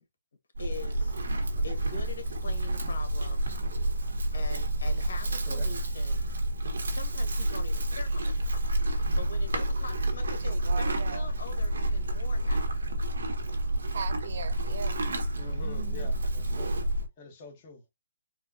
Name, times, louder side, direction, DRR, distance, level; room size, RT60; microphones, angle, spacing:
voice 1, 0.6-1.2 1.6-3.5 4.3-6.2 6.8-12.8, left 3 dB, 75° left, 1.6 m, -43 dB
Livestock farm animals working animals, 0.6-17.1, right 1 dB, 85° right, 1.2 m, -29 dB
voice 2, 10.3-11.3 13.9-15.0 15.6-16.1, right 6 dB, 55° right, 0.6 m, -40 dB
voice 3, 15.4-16.8 17.2-17.8, left 3 dB, 25° left, 1.0 m, -46 dB
4.3 x 2.2 x 2.7 m
hypercardioid pair, 165°, 0 cm